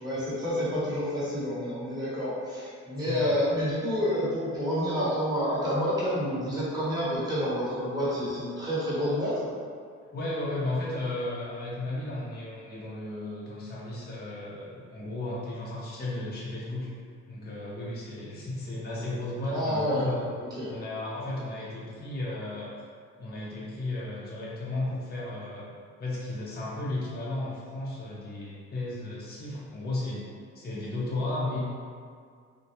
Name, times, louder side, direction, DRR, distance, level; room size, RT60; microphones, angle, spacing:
voice 1, 0.0-9.5 19.5-20.1 20.4-20.7, equal, 15° right, -9 dB, 1.0 m, -29 dB
voice 2, 3.0-3.3 10.1-16.9 17.3-20.3 20.7-22.7 23.2-25.7 26.0-30.3 30.5-31.6, left 2 dB, 35° left, -7 dB, 0.6 m, -34 dB
2.2 x 2.1 x 2.8 m, 2.1 s
cardioid pair, 90°, 30 cm